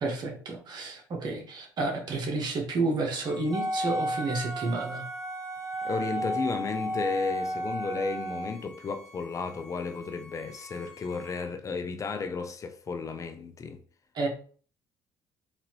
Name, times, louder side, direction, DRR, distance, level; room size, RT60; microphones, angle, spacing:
voice 1, 0.0-5.0 14.1-14.3, right 3 dB, 55° right, 1.5 m, -30 dB
Bowed string instrument, 3.2-11.5, left 2 dB, ahead, 1.5 m, -50 dB
Wind instrument woodwind instrument, 3.5-8.5, right 1 dB, 35° right, 0.6 m, -33 dB
voice 2, 5.8-13.8, left 4 dB, 35° left, 0.6 m, -33 dB
4.0 x 3.0 x 3.0 m
supercardioid pair, 75°, 9 cm